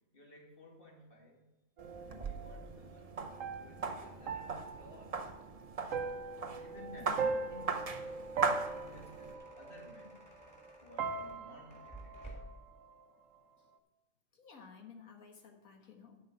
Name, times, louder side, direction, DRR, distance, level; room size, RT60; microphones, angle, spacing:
voice 1, 0.1-1.4 2.1-3.2 3.6-5.2 6.6-8.2 8.7-10.3 10.8-12.3, left 1 dB, 40° left, 0 dB, 2.2 m, -56 dB
sound 1, 1.8-9.3, right 4 dB, 40° right, 0.6 m, -40 dB
sound 2, 1.8-10.7 11.0-13.0, right 4 dB, 75° right, 1.1 m, -40 dB
voice 2, 7.0-7.4 14.3-16.2, left 6 dB, 85° left, 2 dB, 1.9 m, -53 dB
sound 3, 7.7-12.7, right 1 dB, 5° left, 3.7 m, -55 dB
10.5 x 5.6 x 6.6 m, 1.0 s
omnidirectional pair, 1.4 m